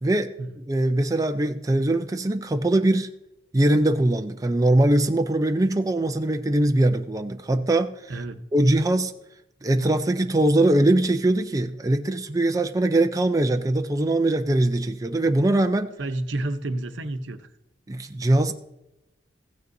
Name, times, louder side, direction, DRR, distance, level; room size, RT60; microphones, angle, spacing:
voice 1, 0.0-0.3 0.7-3.1 3.5-7.9 8.5-9.1 9.6-15.9 17.9-18.5, right 1 dB, 20° right, 6 dB, 0.4 m, -21 dB
voice 2, 8.1-8.5 16.0-17.5, right 2 dB, 90° right, 8 dB, 0.8 m, -30 dB
15.5 x 9.4 x 2.6 m, 0.88 s
head